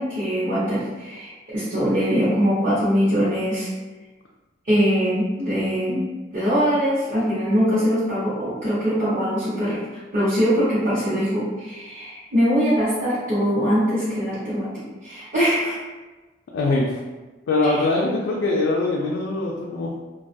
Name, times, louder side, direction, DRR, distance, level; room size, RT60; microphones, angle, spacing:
voice 1, 0.0-3.7 4.7-6.0 6.3-9.8 10.1-15.8 17.6-17.8, equal, 45° right, -12 dB, 0.8 m, -22 dB
voice 2, 16.5-17.0 17.5-20.0, left 2 dB, 75° left, -3 dB, 0.3 m, -22 dB
2.4 x 2.2 x 2.5 m, 1.2 s
head